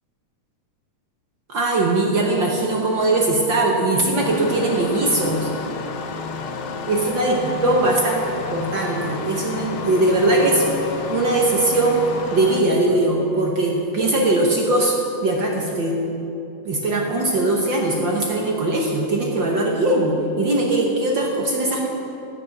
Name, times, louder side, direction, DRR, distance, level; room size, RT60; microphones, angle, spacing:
voice 1, 1.5-5.5 6.9-8.2 8.5-10.8 11.1-16.0 16.6-21.9, right 2 dB, 55° right, 0 dB, 1.3 m, -20 dB
Engine starting, 4.2-12.6, left 5 dB, 70° left, 1.2 m, -31 dB
15.0 x 9.3 x 6.0 m, 2.8 s
omnidirectional pair, 3.5 m